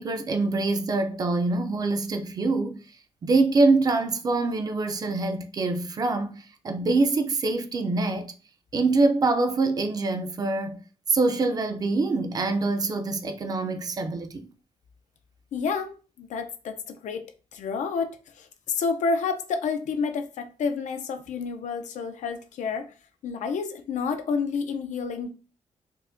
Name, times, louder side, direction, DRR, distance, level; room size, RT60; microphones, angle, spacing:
voice 1, 0.0-2.8 3.2-8.3 8.7-10.8 11.1-14.5, right 3 dB, 30° right, 0.4 m, -25 dB
voice 2, 15.5-22.9 23.2-25.3, left 5 dB, 85° left, 0.5 m, -30 dB
4.5 x 2.1 x 2.6 m
wide cardioid pair, 165°, 12 cm